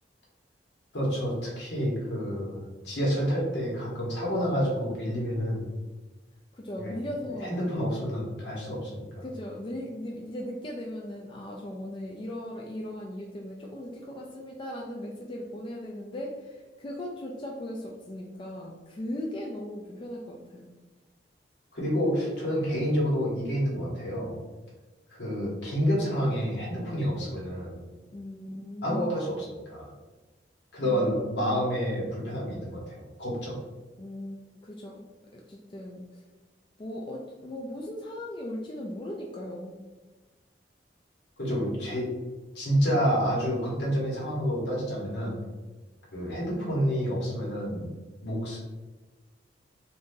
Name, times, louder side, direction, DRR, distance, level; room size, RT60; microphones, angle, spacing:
voice 1, 0.9-2.6 2.8-5.6 6.8-6.9 7.4-9.3 21.7-24.3 25.1-27.8 28.8-29.9 30.7-33.6 41.4-42.1 42.5-45.4 46.1-47.8 48.2-48.6, equal, 70° left, -4 dB, 1.3 m, -29 dB
voice 2, 6.5-7.7 9.2-20.7 28.1-29.2 30.8-31.1 34.0-34.4 34.6-35.0 35.3-36.1 36.8-39.8, left 1 dB, 30° left, -1 dB, 0.3 m, -38 dB
2.7 x 2.6 x 3.7 m, 1.2 s
head